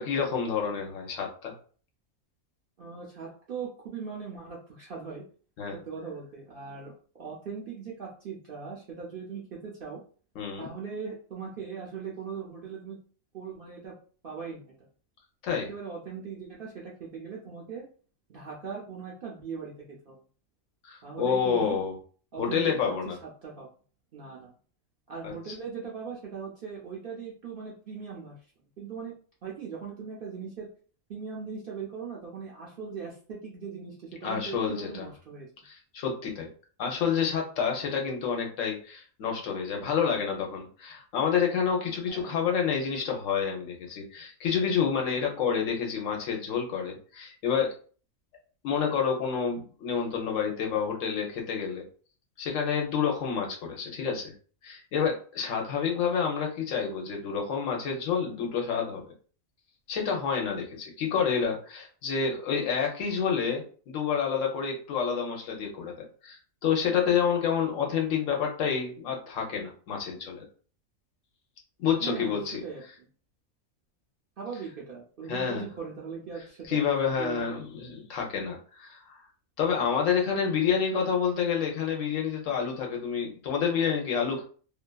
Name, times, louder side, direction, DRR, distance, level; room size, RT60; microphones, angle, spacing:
voice 1, 0.0-1.5 5.6-5.8 10.4-10.7 15.4-15.7 20.8-21.9 22.4-23.2 25.2-25.3 34.2-35.1 35.6-36.5 36.8-47.7 48.6-51.8 52.4-54.3 54.6-59.0 59.9-70.4 71.8-72.6 75.3-75.6 76.7-79.2 79.6-84.4, left 6 dB, 70° left, 1 dB, 1.0 m, -28 dB
voice 2, 2.8-5.2 5.7-6.9 7.2-10.0 10.6-13.0 13.3-14.0 14.2-14.7 15.7-17.9 18.3-20.2 21.0-21.8 22.3-23.7 24.1-24.5 25.1-28.3 28.8-29.1 29.4-30.7 31.1-35.5 42.1-42.4 72.0-73.1 74.4-76.9 77.2-77.6, right 6 dB, 55° right, -4 dB, 0.6 m, -39 dB
2.7 x 2.3 x 2.2 m, 0.41 s
omnidirectional pair, 1.5 m